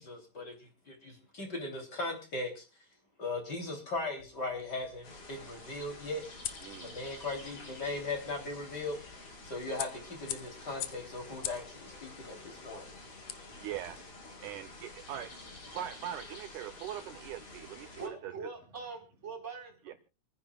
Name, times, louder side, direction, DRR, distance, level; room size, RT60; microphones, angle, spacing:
voice 1, 0.0-2.6 3.2-6.3 6.8-12.9, left 2 dB, 30° left, 2 dB, 3.4 m, -38 dB
sound 1, 4.2-14.1, left 12 dB, 80° left, 1.4 m, -46 dB
sound 2, 5.0-18.1, left 2 dB, 50° left, 5.1 m, -49 dB
voice 2, 6.6-6.9 13.6-14.0 14.4-15.3 15.7-18.3, right 10 dB, 75° right, 9 dB, 1.9 m, -41 dB
voice 3, 18.0-20.0, right 5 dB, 20° right, 0 dB, 4.3 m, -43 dB
28.0 x 9.9 x 2.3 m, 0.32 s
omnidirectional pair, 4.1 m